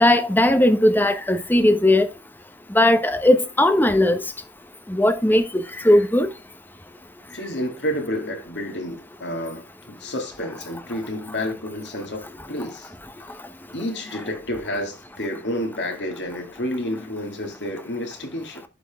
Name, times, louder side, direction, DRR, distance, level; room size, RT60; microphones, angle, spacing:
voice 1, 0.0-2.1 2.7-4.2 4.9-6.3, left 1 dB, 10° left, 0.9 m, -18 dB
voice 2, 7.3-12.9 13.7-18.6, left 1 dB, 85° left, 2.4 m, -30 dB
11.5 x 4.2 x 3.5 m
head